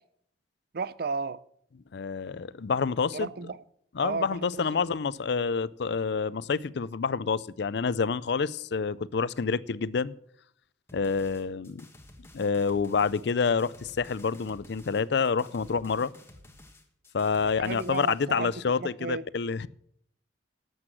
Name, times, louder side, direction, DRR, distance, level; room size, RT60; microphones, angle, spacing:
voice 1, 0.7-1.4 3.1-3.6 4.0-4.8 17.4-18.5 18.8-19.2, right 4 dB, 55° right, 0.5 m, -34 dB
voice 2, 1.9-3.3 3.9-10.1 10.9-11.9 12.3-16.1 17.1-19.7, left 5 dB, 65° left, 0.5 m, -28 dB
sound 1, 10.9-18.2, left 1 dB, 15° left, 1.5 m, -52 dB
12.0 x 7.9 x 7.7 m
head